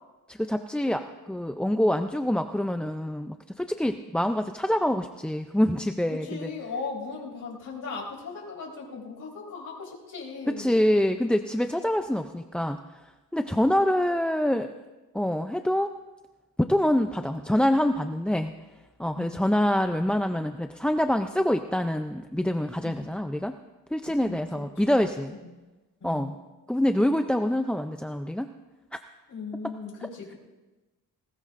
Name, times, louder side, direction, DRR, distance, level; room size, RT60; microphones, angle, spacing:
voice 1, 0.3-6.5 10.5-12.8 13.3-14.7 15.1-15.9 16.6-18.5 19.0-23.5 23.9-25.3 26.0-26.3 26.7-28.5 29.6-29.7, left 1 dB, 5° left, 7 dB, 0.3 m, -25 dB
voice 2, 6.2-10.7 19.1-19.4 22.8-23.0 24.1-24.6 26.0-26.4 29.3-30.4, left 4 dB, 50° left, -3 dB, 4.0 m, -38 dB
19.5 x 19.0 x 2.5 m, 1.2 s
cardioid pair, 110°, 38 cm